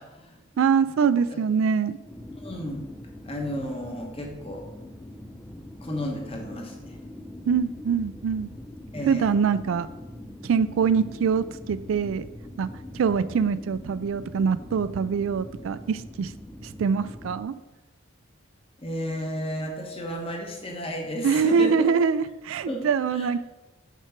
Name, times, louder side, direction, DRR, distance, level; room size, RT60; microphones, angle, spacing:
voice 1, 0.0-0.4 1.2-1.4 2.4-2.8 3.2-4.6 5.8-7.0 8.9-9.2 18.8-21.9 22.7-22.8 23.1-23.4, equal, 30° left, 1 dB, 1.1 m, -33 dB
voice 2, 0.6-2.0 7.5-8.5 9.1-9.9 10.4-12.3 12.6-12.7 12.9-16.3 16.6-17.5 21.2-23.4, right 6 dB, 80° right, 15 dB, 0.3 m, -24 dB
sound 1, 2.1-17.4, left 1 dB, 5° left, 0.4 m, -42 dB
6.0 x 4.5 x 5.8 m, 1.1 s
head